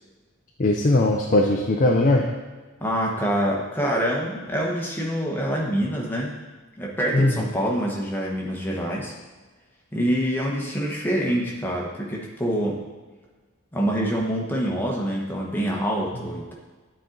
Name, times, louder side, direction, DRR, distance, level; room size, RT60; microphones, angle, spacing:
voice 1, 0.6-2.3 7.1-7.4, left 2 dB, 35° left, 0 dB, 0.5 m, -19 dB
voice 2, 2.8-6.4 6.8-9.1 9.9-12.8 13.7-16.5, equal, 10° left, -3 dB, 1.1 m, -26 dB
9.4 x 4.3 x 3.9 m, 1.3 s
head